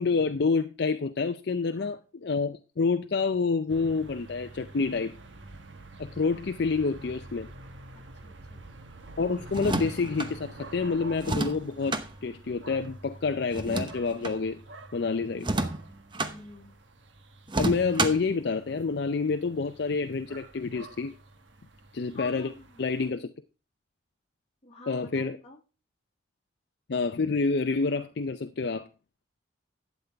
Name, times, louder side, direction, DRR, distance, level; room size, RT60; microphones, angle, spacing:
voice 1, 0.0-5.2 6.0-7.5 9.2-14.6 14.9-15.5 17.6-21.1 21.9-22.5 22.8-23.3 24.9-25.4 26.9-28.9, left 4 dB, 60° left, 0.5 m, -28 dB
voice 2, 1.6-2.0 7.9-8.6 16.1-16.7 22.1-22.8 24.6-25.6, left 3 dB, 35° left, 2.0 m, -48 dB
sound 1, 3.7-23.1, right 2 dB, 75° right, 1.2 m, -48 dB
sound 2, 9.5-10.3 11.2-12.1 13.5-14.4 15.4-16.3 17.5-18.3, right 2 dB, 25° right, 0.9 m, -30 dB
12.0 x 8.1 x 3.4 m
head